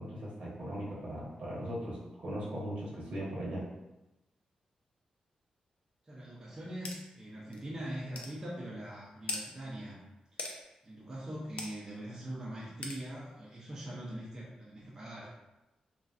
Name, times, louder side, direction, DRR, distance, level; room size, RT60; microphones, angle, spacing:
voice 1, 0.0-3.6, equal, 70° right, -6 dB, 1.1 m, -39 dB
voice 2, 6.0-10.0 10.3-10.4 10.8-15.3, right 1 dB, 25° right, -5 dB, 0.6 m, -42 dB
sound 1, 6.8-7.0 7.5-7.6 8.1-8.3 9.3-9.4 10.4-10.6 11.6-11.7 12.8-13.0, left 3 dB, 65° left, 0.5 m, -38 dB
3.1 x 2.5 x 2.4 m, 1.0 s
cardioid pair, 95°, 2 cm